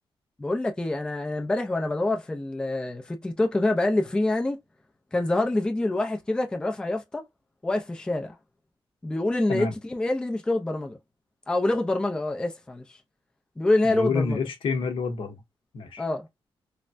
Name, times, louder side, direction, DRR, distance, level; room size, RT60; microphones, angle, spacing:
voice 1, 0.4-4.6 5.1-7.3 7.6-8.4 9.0-11.0 11.5-13.0 13.6-14.4 16.0-16.3, left 2 dB, 10° left, 0.4 m, -26 dB
voice 2, 13.8-15.4 15.7-16.0, left 4 dB, 65° left, 0.8 m, -28 dB
3.2 x 2.1 x 2.5 m
wide cardioid pair, 160°, 9 cm